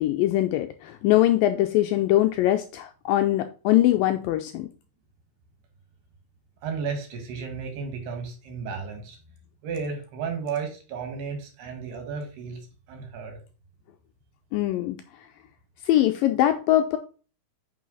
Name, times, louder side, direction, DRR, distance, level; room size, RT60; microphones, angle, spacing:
voice 1, 0.0-4.7 14.5-15.0 15.8-17.0, left 14 dB, 85° left, 2.0 m, -22 dB
voice 2, 6.6-9.2 9.6-12.6 12.9-13.4, right 5 dB, 80° right, 4.1 m, -33 dB
9.5 x 5.5 x 4.1 m
omnidirectional pair, 4.6 m